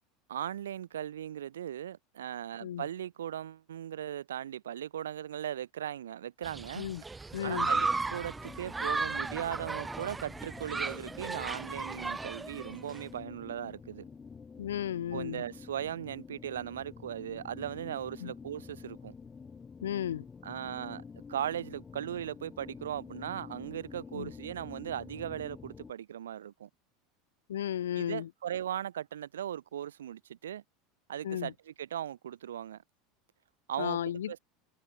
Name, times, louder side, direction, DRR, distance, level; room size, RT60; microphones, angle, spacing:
voice 1, 0.3-6.9 7.4-14.0 15.1-19.1 20.4-21.0 21.3-26.7 28.0-30.6 31.1-32.8 33.7-34.0 34.3-34.4, right 10 dB, 70° right, 1.4 m, -38 dB
Human group actions, 6.4-13.0, right 3 dB, 15° right, 3.8 m, -35 dB
voice 2, 7.3-7.7 14.6-15.4 18.2-18.3 19.8-20.2 24.1-24.3 27.5-28.3 31.2-31.5 33.8-34.3, left 10 dB, 70° left, 2.7 m, -34 dB
sound 1, 7.4-25.9, left 5 dB, 20° left, 5.1 m, -49 dB
figure-of-eight pair, 75°, 0 cm